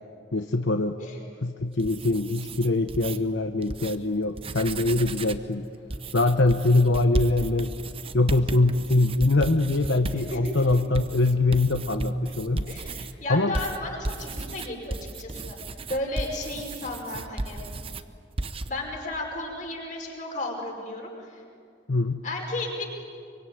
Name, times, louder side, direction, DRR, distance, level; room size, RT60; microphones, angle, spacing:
voice 1, 0.3-1.0 1.4-5.6 6.1-7.7 8.1-12.6 13.3-13.5 21.9-22.2, left 2 dB, 75° left, 6 dB, 1.0 m, -23 dB
sound 1, 1.7-3.2 3.6-4.0 4.3-5.5 5.9-13.1 13.5-18.0 18.4-18.7, right 2 dB, 30° right, 0.8 m, -34 dB
voice 2, 12.6-15.6 15.9-17.6 18.7-21.1 22.2-22.8, left 2 dB, 40° left, 0 dB, 5.3 m, -34 dB
24.5 x 24.0 x 9.4 m, 2.4 s
head